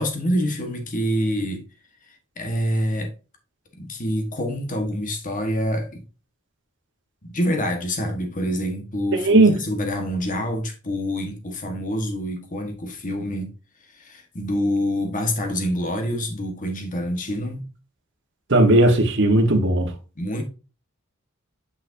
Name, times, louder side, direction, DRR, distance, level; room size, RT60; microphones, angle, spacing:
voice 1, 0.0-1.6 2.4-3.1 3.8-6.0 7.2-13.5 13.9-17.7 20.2-20.4, equal, 40° left, 1.5 m, -26 dB
voice 2, 18.5-19.9, right 2 dB, 60° right, 1.3 m, -16 dB
6.7 x 5.9 x 2.7 m
head